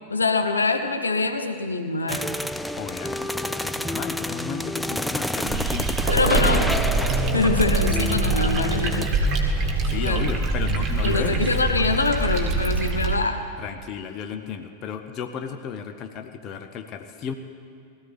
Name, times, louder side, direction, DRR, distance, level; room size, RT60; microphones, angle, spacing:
voice 1, 0.1-2.3 6.1-6.7 7.3-9.4 9.9-10.3 11.0-13.5, left 3 dB, 75° left, 7 dB, 0.9 m, -24 dB
sound 1, 2.1-9.1, left 1 dB, 5° left, 0.4 m, -29 dB
voice 2, 2.7-6.7 9.8-11.4 13.6-17.3, left 7 dB, 35° left, 7 dB, 0.8 m, -34 dB
sound 2, 5.5-13.1, right 2 dB, 25° right, 1.8 m, -24 dB
sound 3, 6.1-11.4, right 4 dB, 60° right, 1.1 m, -32 dB
20.5 x 14.0 x 3.5 m, 2.2 s
figure-of-eight pair, 90°, 0 cm